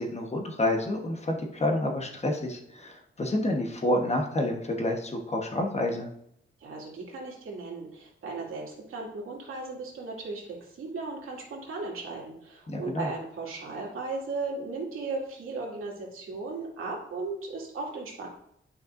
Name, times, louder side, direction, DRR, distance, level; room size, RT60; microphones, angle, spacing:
voice 1, 0.0-6.1 12.7-13.1, left 1 dB, 30° left, 2 dB, 1.2 m, -29 dB
voice 2, 6.6-18.3, right 3 dB, 90° right, -3 dB, 2.3 m, -36 dB
10.5 x 5.6 x 2.6 m, 0.74 s
wide cardioid pair, 125°, 21 cm